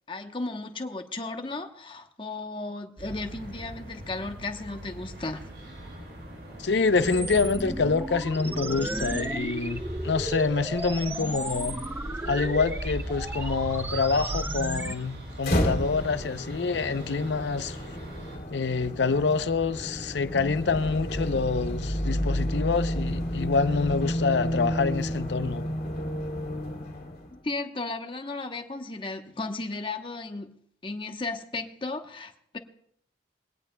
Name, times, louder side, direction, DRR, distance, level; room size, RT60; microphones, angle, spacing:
voice 1, 0.1-5.5 27.3-30.5 30.8-32.6, left 3 dB, 30° left, 1.0 m, -35 dB
sound 1, 3.0-18.4, right 1 dB, 60° right, 7.1 m, -43 dB
voice 2, 6.6-11.8 12.3-17.8 18.5-25.7, left 4 dB, 80° left, 0.6 m, -26 dB
sound 2, 7.0-14.9, right 1 dB, 10° right, 0.5 m, -33 dB
sound 3, 15.4-27.4, equal, 55° left, 2.5 m, -31 dB
22.0 x 17.5 x 2.2 m
head